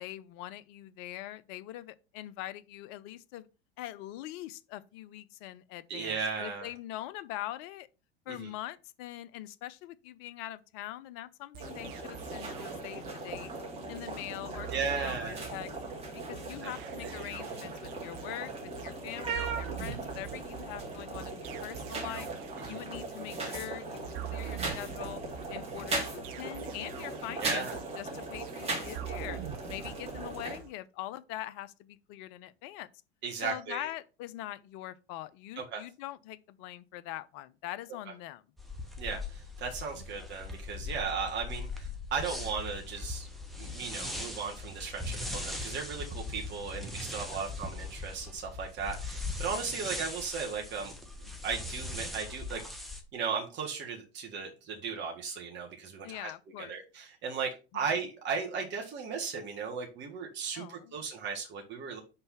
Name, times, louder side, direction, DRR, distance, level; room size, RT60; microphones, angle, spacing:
voice 1, 0.0-3.5 3.8-7.9 8.3-13.5 13.9-15.7 16.1-22.3 22.7-24.0 24.3-25.2 25.5-29.4 29.7-32.9 33.4-38.4 40.0-40.1 47.3-47.4 56.0-56.8 57.7-57.9 60.6-60.9, left 14 dB, 45° left, 0.6 m, -43 dB
voice 2, 5.9-6.7 8.3-8.5 14.7-15.4 16.6-17.2 22.7-22.9 27.4-27.8 33.2-33.9 35.5-35.8 39.0-43.3 43.6-50.9 51.2-52.6 53.1-56.3 56.6-62.0, right 5 dB, 35° right, 1.7 m, -36 dB
sound 1, 11.5-30.7, right 12 dB, 55° right, 0.8 m, -45 dB
sound 2, 11.6-30.6, right 2 dB, 20° right, 2.6 m, -39 dB
sound 3, 38.6-53.0, left 2 dB, ahead, 1.3 m, -40 dB
5.5 x 4.0 x 5.8 m
figure-of-eight pair, 85°, 31 cm